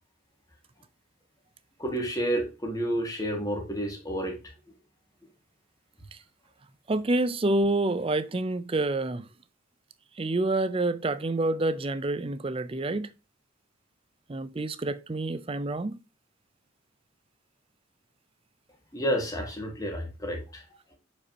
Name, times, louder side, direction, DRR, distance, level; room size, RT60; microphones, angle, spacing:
voice 1, 1.8-4.4 18.9-20.6, equal, 20° left, 1.8 m, -30 dB
voice 2, 6.9-9.3 10.2-13.1 14.3-16.0, right 2 dB, 25° right, 0.5 m, -28 dB
6.9 x 5.3 x 2.8 m
head